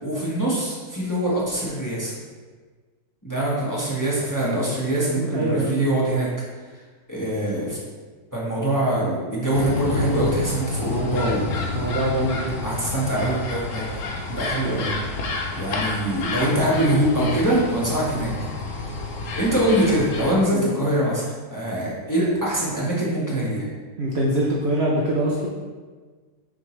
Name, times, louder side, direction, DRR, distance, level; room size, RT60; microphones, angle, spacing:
voice 1, 0.0-2.1 3.2-6.3 7.1-7.8 8.3-11.7 12.6-13.8 14.3-14.9 15.6-18.3 19.4-23.7, right 1 dB, 10° left, -6 dB, 1.1 m, -23 dB
voice 2, 5.2-5.9 11.6-12.8 20.5-20.7 24.0-25.5, right 1 dB, 60° right, -3 dB, 0.7 m, -24 dB
sound 1, 9.5-20.5, left 3 dB, 70° left, 0.8 m, -30 dB
6.1 x 5.0 x 3.2 m, 1.4 s
omnidirectional pair, 2.0 m